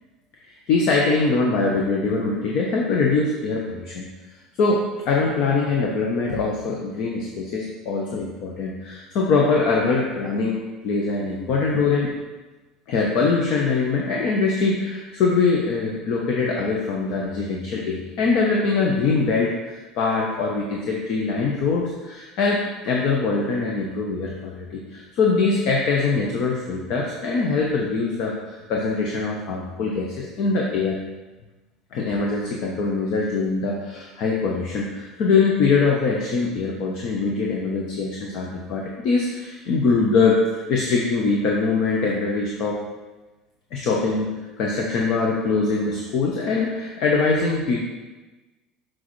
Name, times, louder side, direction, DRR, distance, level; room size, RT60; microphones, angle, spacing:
voice 1, 0.7-4.1 4.6-10.6 10.8-12.1 12.9-19.5 20.0-31.0 31.9-40.4 40.7-42.8 43.7-44.3 44.6-47.8, left 4 dB, 50° left, -1 dB, 0.8 m, -23 dB
6.2 x 6.1 x 3.1 m, 1.2 s
cardioid pair, 170°, 0 cm